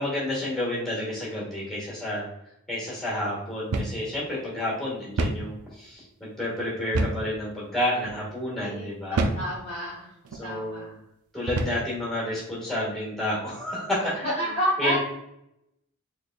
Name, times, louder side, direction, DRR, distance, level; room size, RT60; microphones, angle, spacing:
voice 1, 0.0-2.3 2.7-9.3 10.3-10.9 11.3-14.4 14.8-15.0, left 1 dB, ahead, -5 dB, 1.5 m, -30 dB
sound 1, 3.7-4.0 4.3-4.4 5.2-5.5 6.9-7.3 8.0-8.2 9.2-9.5 10.2-10.5 11.5-11.9, right 2 dB, 85° right, 0.5 m, -27 dB
voice 2, 8.6-10.1 10.4-10.9 14.0-14.1 14.4-15.0, equal, 25° left, -7 dB, 0.8 m, -30 dB
4.0 x 3.3 x 2.3 m, 0.80 s
head